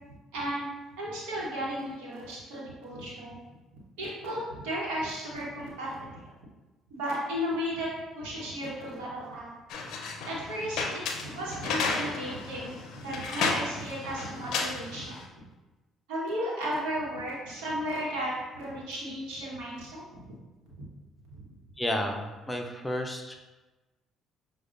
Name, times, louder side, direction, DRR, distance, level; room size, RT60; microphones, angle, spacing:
voice 1, 0.3-0.7 1.0-3.4 4.0-5.9 6.9-7.9 8.1-9.5 10.3-15.2 16.1-20.3 21.3-21.5, equal, 80° right, -4 dB, 1.0 m, -34 dB
sound 1, 9.7-15.2, left 4 dB, 70° left, 0.4 m, -33 dB
voice 2, 21.8-23.4, left 1 dB, 15° left, 3 dB, 0.5 m, -32 dB
6.1 x 2.2 x 2.5 m, 1.1 s
hypercardioid pair, 55°, 0 cm